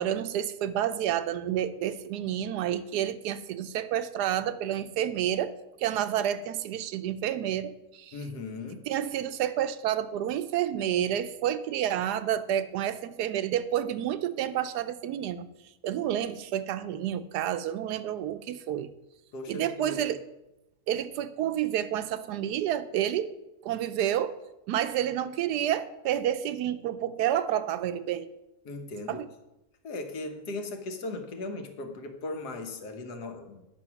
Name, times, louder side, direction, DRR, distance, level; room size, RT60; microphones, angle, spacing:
voice 1, 0.0-5.5 5.8-8.2 8.9-15.5 15.8-18.9 19.5-20.2 20.9-23.3 23.6-24.4 24.7-28.3 29.1-29.3, right 10 dB, 85° right, 12 dB, 1.2 m, -29 dB
voice 2, 8.1-8.9 19.3-20.1 28.6-29.2 29.8-33.6, left 2 dB, 75° left, 5 dB, 1.6 m, -38 dB
9.8 x 6.3 x 5.9 m, 0.95 s
omnidirectional pair, 1.7 m